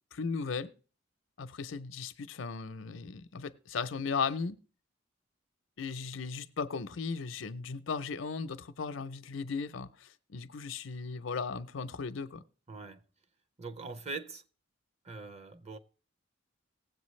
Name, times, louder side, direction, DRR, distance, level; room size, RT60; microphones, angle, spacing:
voice 1, 0.1-0.7 1.4-4.6 5.8-12.4, left 5 dB, 75° left, 0.6 m, -36 dB
voice 2, 12.7-13.0 13.6-14.4 15.0-15.8, right 3 dB, 35° right, 0.6 m, -42 dB
18.5 x 7.9 x 3.2 m
head